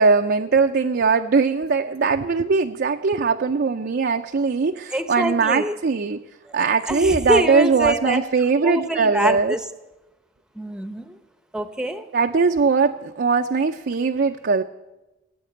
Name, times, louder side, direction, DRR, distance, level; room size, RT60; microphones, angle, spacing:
voice 1, 0.0-6.2 6.5-9.5 12.1-14.6, right 4 dB, 50° right, 5 dB, 0.5 m, -20 dB
voice 2, 4.9-5.8 6.5-6.6 6.9-8.2 8.6-9.6 10.6-11.2 11.5-12.0, equal, 5° right, 9 dB, 0.7 m, -25 dB
17.0 x 8.6 x 8.5 m, 1.1 s
head